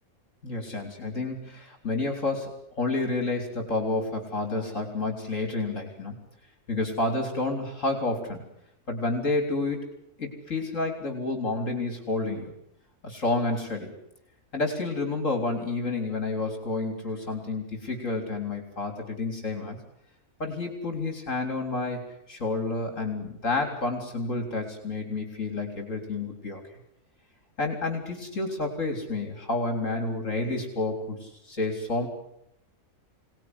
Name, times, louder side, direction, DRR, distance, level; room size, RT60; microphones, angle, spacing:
voice 1, 0.4-2.5 2.8-6.1 6.7-8.4 8.9-9.8 10.2-12.5 13.0-13.9 14.5-19.8 20.4-22.0 22.3-26.6 27.6-32.1, left 2 dB, 60° left, 3 dB, 4.2 m, -30 dB
25.5 x 19.0 x 9.8 m, 0.80 s
omnidirectional pair, 1.5 m